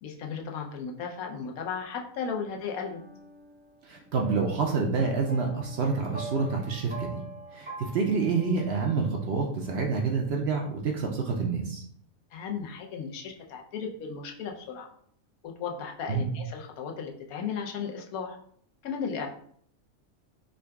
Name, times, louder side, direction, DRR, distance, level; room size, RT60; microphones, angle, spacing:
voice 1, 0.0-3.0 12.3-14.9 15.6-18.4 18.8-19.3, left 6 dB, 90° left, 1 dB, 1.1 m, -35 dB
sound 1, 2.8-9.7, right 2 dB, 10° right, 0.5 m, -45 dB
voice 2, 3.8-7.2 7.5-11.8 16.1-16.3, right 4 dB, 65° right, 1 dB, 0.7 m, -28 dB
3.7 x 2.2 x 3.4 m, 0.63 s
omnidirectional pair, 1.5 m